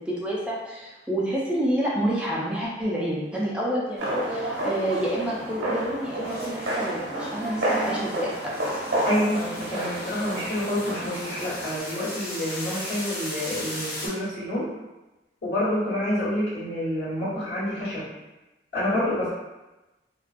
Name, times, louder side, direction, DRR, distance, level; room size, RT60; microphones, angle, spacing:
voice 1, 0.0-8.7, right 1 dB, 5° right, -5 dB, 0.4 m, -28 dB
sound 1, 4.0-11.8, right 1 dB, 80° right, 0.7 m, -30 dB
sound 2, 6.2-14.1, left 1 dB, 60° left, 1.1 m, -38 dB
voice 2, 9.0-14.7 15.4-18.1 18.7-19.3, left 1 dB, 75° left, -11 dB, 1.4 m, -28 dB
2.3 x 2.2 x 2.4 m, 1.1 s
head